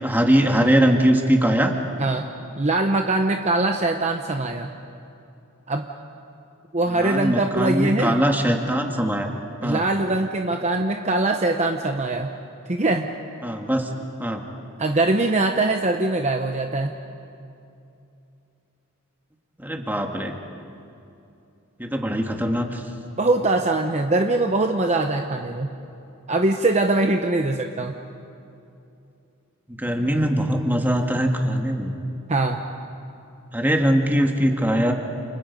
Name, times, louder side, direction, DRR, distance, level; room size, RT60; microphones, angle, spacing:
voice 1, 0.0-1.7 7.0-9.3 9.6-9.8 13.4-13.9 14.2-14.4 19.6-20.3 21.8-22.8 29.8-31.9 33.5-34.9, equal, 10° right, 3 dB, 1.8 m, -21 dB
voice 2, 2.0-4.7 5.7-5.9 6.7-8.2 9.6-12.4 12.7-13.1 14.8-17.0 23.2-25.7 26.3-27.9 32.3-32.6, right 2 dB, 30° right, 4 dB, 1.0 m, -22 dB
29.5 x 29.0 x 5.4 m, 2.7 s
head